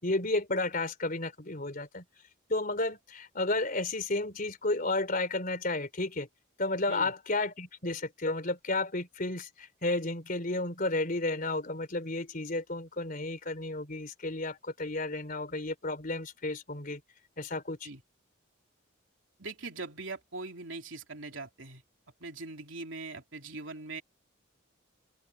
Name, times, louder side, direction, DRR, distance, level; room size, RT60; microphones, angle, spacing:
voice 1, 0.0-2.0 2.5-6.3 6.6-17.0 17.4-17.9, left 2 dB, 45° left, 3.7 m, -32 dB
voice 2, 19.4-21.8 22.2-24.0, right 3 dB, 70° right, 3.6 m, -41 dB
head